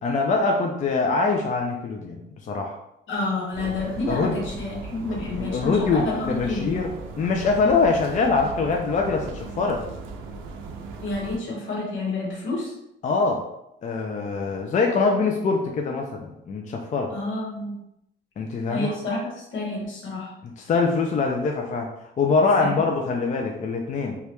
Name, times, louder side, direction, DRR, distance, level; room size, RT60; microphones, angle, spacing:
voice 1, 0.0-2.8 4.1-4.4 5.1-9.8 13.0-13.4 13.8-17.1 18.4-18.9 20.4-21.9 22.2-24.2, left 4 dB, 40° left, 2 dB, 0.4 m, -24 dB
voice 2, 3.1-6.7 11.0-12.7 17.1-17.8 18.7-20.3 22.6-22.8, left 2 dB, 75° left, -2 dB, 1.1 m, -29 dB
sound 1, 3.5-11.4, right 3 dB, 85° right, 0.4 m, -37 dB
3.1 x 2.3 x 2.9 m, 0.81 s
cardioid pair, 90°, 20 cm